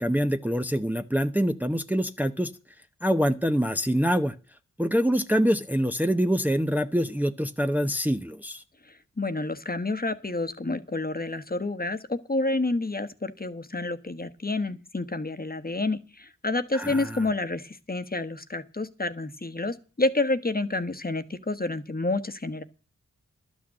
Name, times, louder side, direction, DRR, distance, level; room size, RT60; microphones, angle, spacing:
voice 1, 0.0-2.5 3.0-4.3 4.8-8.6 16.7-17.2, equal, 5° right, 8 dB, 0.9 m, -25 dB
voice 2, 8.9-22.6, left 2 dB, 30° left, 10 dB, 1.3 m, -29 dB
12.0 x 6.3 x 8.7 m, 0.36 s
cardioid pair, 45°, 31 cm